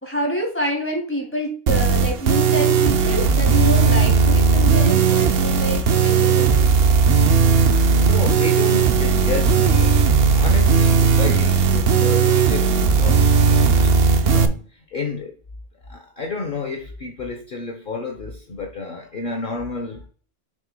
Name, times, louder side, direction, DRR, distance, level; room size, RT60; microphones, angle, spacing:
voice 1, 0.0-6.8, equal, 10° left, 2.7 m, -27 dB
sound 1, 1.7-14.5, right 5 dB, 70° right, 0.9 m, -16 dB
voice 2, 7.6-10.0 10.3-13.9 14.2-15.4 15.9-20.1, left 4 dB, 55° left, 1.0 m, -30 dB
6.7 x 6.3 x 2.2 m
omnidirectional pair, 1.1 m